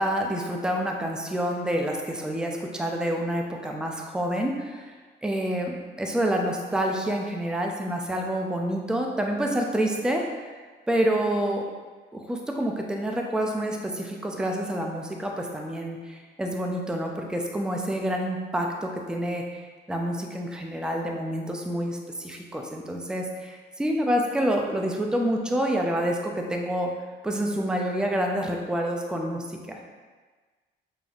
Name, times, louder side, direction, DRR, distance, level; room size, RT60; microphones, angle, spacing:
voice 1, 0.0-5.0 5.2-10.2 10.9-11.6 12.1-19.4 19.9-26.9 27.2-29.8, right 1 dB, 5° right, 1 dB, 0.4 m, -28 dB
5.0 x 2.5 x 2.4 m, 1.4 s
cardioid pair, 90°, 20 cm